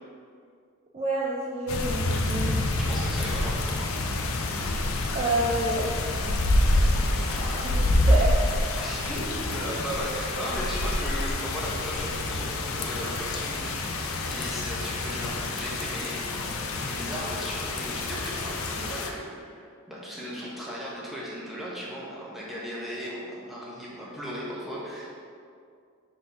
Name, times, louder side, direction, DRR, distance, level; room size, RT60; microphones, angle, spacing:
voice 1, 0.9-2.6 5.1-5.8 7.6-8.4, right 2 dB, 30° right, -4 dB, 0.4 m, -28 dB
sound 1, 1.7-19.1, left 2 dB, 70° left, 0.6 m, -27 dB
voice 2, 2.8-3.7 6.6-7.6 8.8-16.2 16.8-25.1, equal, ahead, -7 dB, 1.1 m, -37 dB
4.3 x 4.1 x 5.5 m, 2.3 s
head